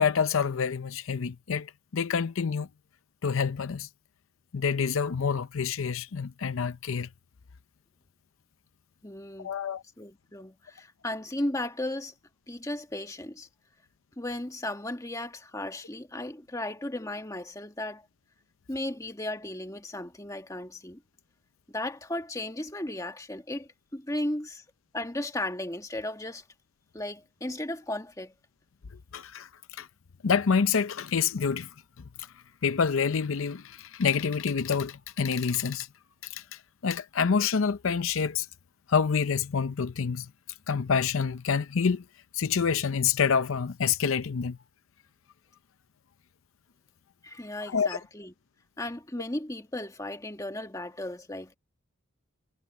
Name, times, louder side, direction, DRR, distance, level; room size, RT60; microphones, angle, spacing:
voice 1, 0.0-2.7 3.2-3.9 4.5-7.1 9.4-9.8 29.1-29.9 30.2-31.7 32.2-32.3 32.6-35.9 36.2-38.5 38.9-40.3 40.7-42.0 42.3-44.6 47.7-48.0, left 6 dB, 70° left, 0.6 m, -27 dB
voice 2, 9.0-9.5 10.0-12.1 12.5-13.5 14.2-18.0 18.7-21.0 21.7-24.6 24.9-26.4 26.9-28.3 47.2-48.3 48.8-51.6, left 1 dB, 15° left, 1.5 m, -35 dB
head